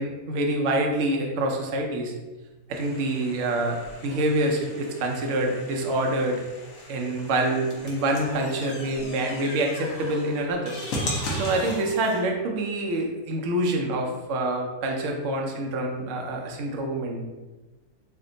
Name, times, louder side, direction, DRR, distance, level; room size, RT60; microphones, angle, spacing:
voice 1, 0.0-2.1 2.7-6.4 6.9-10.8 11.3-17.2, right 1 dB, 65° right, 1 dB, 0.7 m, -26 dB
sound 1, 2.7-12.2, equal, 60° left, 1.1 m, -37 dB
3.4 x 2.2 x 3.8 m, 1.2 s
omnidirectional pair, 1.8 m